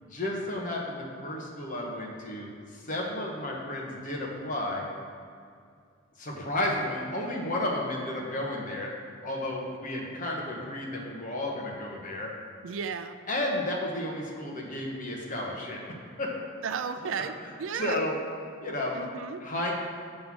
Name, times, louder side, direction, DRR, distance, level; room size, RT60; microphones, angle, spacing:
voice 1, 0.0-4.8 6.2-12.3 13.3-16.3 17.0-18.1 18.6-19.0 19.4-19.7, left 1 dB, 40° left, -1 dB, 1.1 m, -33 dB
voice 2, 12.6-13.2 16.6-18.0 18.9-19.4, right 6 dB, 70° right, 9 dB, 0.4 m, -34 dB
7.8 x 3.8 x 6.0 m, 2.2 s
head